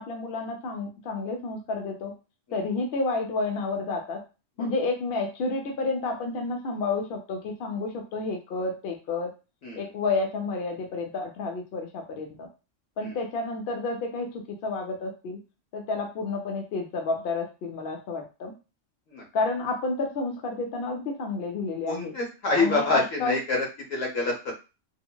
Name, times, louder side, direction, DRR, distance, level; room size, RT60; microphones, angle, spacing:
voice 1, 0.0-2.1 2.5-4.2 4.6-9.3 9.8-12.5 13.0-15.4 15.7-18.5 19.3-22.1 22.6-23.4, left 3 dB, 60° left, 1 dB, 0.8 m, -30 dB
voice 2, 21.9-24.5, left 3 dB, 85° left, 0 dB, 1.3 m, -27 dB
3.7 x 2.0 x 2.2 m, 0.30 s
omnidirectional pair, 1.3 m